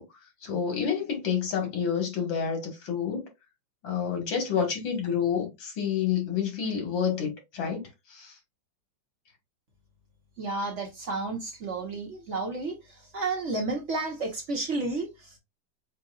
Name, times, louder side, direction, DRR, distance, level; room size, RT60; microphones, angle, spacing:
voice 1, 0.0-3.3 3.8-8.4, left 7 dB, 85° left, 2.5 m, -29 dB
voice 2, 10.4-15.4, right 3 dB, 45° right, 1.4 m, -32 dB
7.6 x 2.6 x 2.4 m
omnidirectional pair, 2.0 m